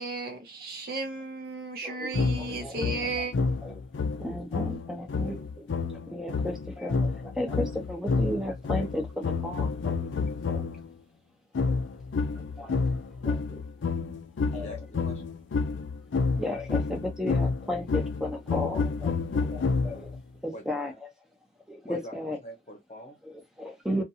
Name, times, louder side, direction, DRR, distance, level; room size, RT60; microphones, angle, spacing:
voice 1, 0.0-3.3, right 2 dB, 55° right, 0.7 m, -34 dB
voice 2, 1.8-3.3 3.6-3.7 4.2-5.6 5.9-10.0 10.5-10.6 11.7-11.8 12.3-12.7 13.2-13.6 14.5-14.8 16.4-20.1 20.4-21.1 21.7-22.4 23.3-24.0, left 1 dB, 5° right, 0.7 m, -34 dB
sound 1, 2.1-10.9 11.6-20.2, left 4 dB, 90° left, 0.4 m, -29 dB
voice 3, 14.5-15.2 20.5-21.0 21.8-23.2, equal, 35° left, 0.9 m, -44 dB
2.5 x 2.4 x 2.7 m
head